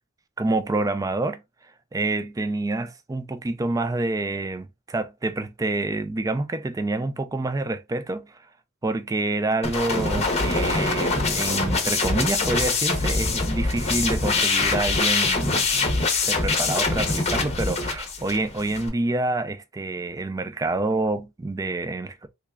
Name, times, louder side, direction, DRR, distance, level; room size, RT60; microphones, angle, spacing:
voice 1, 0.4-1.4 1.9-8.4 8.8-22.3, right 2 dB, 15° right, 0.3 m, -27 dB
sound 1, 9.6-18.9, left 3 dB, 30° left, 0.8 m, -24 dB
3.5 x 3.2 x 2.2 m
head